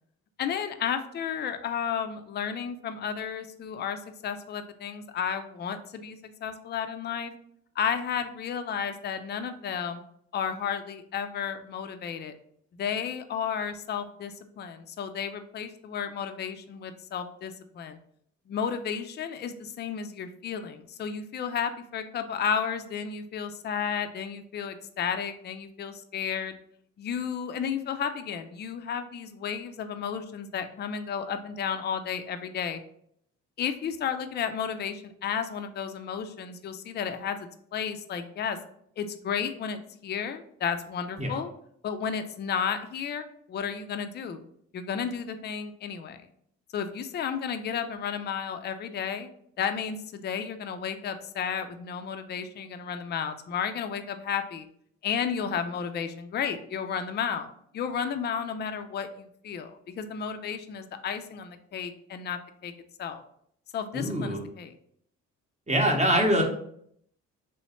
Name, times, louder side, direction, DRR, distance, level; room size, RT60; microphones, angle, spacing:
voice 1, 0.4-7.3 7.8-10.0 10.3-12.3 12.7-18.0 18.5-26.5 27.0-32.8 33.6-37.4 37.7-38.6 39.0-41.5 41.8-44.4 44.7-46.2 46.7-49.3 49.6-54.7 55.0-57.5 57.7-62.7 63.0-63.2 63.7-64.7, left 7 dB, 35° left, 8 dB, 0.4 m, -32 dB
voice 2, 63.9-64.4 65.7-66.4, equal, 25° right, 2 dB, 0.8 m, -24 dB
3.1 x 3.1 x 2.9 m, 0.68 s
cardioid pair, 90°, 30 cm